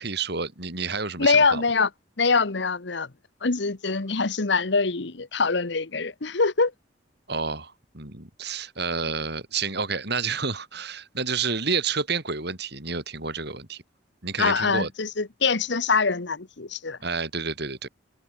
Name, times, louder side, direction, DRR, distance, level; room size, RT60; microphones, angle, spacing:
voice 1, 0.0-1.6 7.3-13.8 14.2-14.9 17.0-17.9, right 5 dB, 60° right, 6.2 m, -29 dB
voice 2, 1.2-1.9 2.2-3.1 3.4-6.7 14.4-17.0, left 4 dB, 70° left, 1.2 m, -24 dB
head